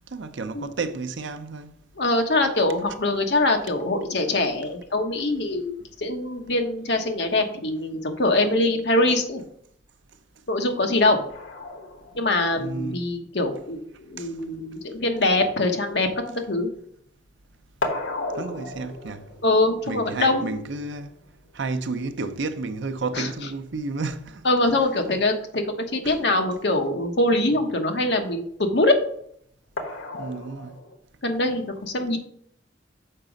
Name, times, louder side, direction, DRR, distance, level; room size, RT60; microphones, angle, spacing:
voice 1, 0.1-1.8 12.6-13.0 14.2-14.3 18.4-19.2 19.9-21.1 21.5-24.4 26.0-26.2 30.1-30.8, right 3 dB, 75° right, 0.6 m, -31 dB
voice 2, 2.0-9.4 10.5-11.2 12.1-13.8 14.1-16.1 16.5-16.7 19.4-20.5 23.1-23.3 24.4-25.6 25.9-29.0 31.2-32.2, left 2 dB, 65° left, 1.0 m, -23 dB
sound 1, 11.3-17.0 17.3-24.3 25.7-25.8 26.2-26.3 29.8-31.0, left 2 dB, 90° left, 1.2 m, -37 dB
6.6 x 4.9 x 5.1 m
head